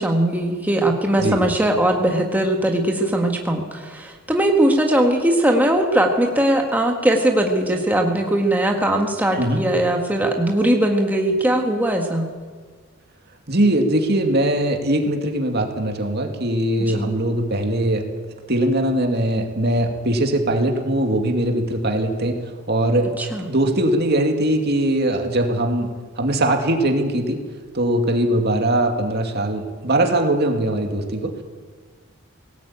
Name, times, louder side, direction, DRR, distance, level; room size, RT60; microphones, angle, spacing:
voice 1, 0.0-12.3 16.8-17.1 23.2-23.5, right 1 dB, 10° right, 1 dB, 1.7 m, -20 dB
voice 2, 13.5-18.0 18.5-22.4 22.7-23.1 23.4-25.9 26.2-27.4 27.7-31.3, right 1 dB, 50° right, 3 dB, 2.4 m, -21 dB
19.0 x 17.5 x 8.8 m, 1.5 s
head